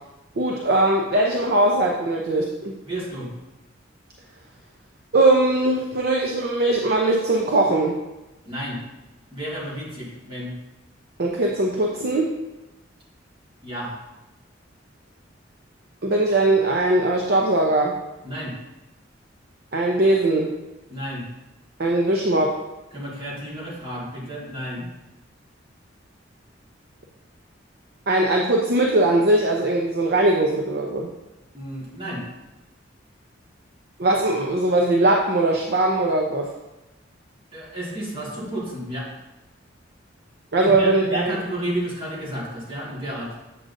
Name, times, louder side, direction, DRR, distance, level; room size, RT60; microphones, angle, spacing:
voice 1, 0.4-2.8 5.1-8.0 11.2-12.3 16.0-18.0 19.7-20.5 21.8-22.6 28.1-31.1 34.0-36.5 40.5-41.4, right 2 dB, 55° right, 0 dB, 0.7 m, -20 dB
voice 2, 2.9-3.3 8.5-8.8 9.3-10.5 13.6-13.9 18.2-18.5 20.9-21.2 22.9-24.9 31.5-32.2 37.5-39.1 40.6-43.4, equal, 30° right, -6 dB, 1.9 m, -31 dB
7.7 x 7.5 x 2.6 m, 0.99 s
head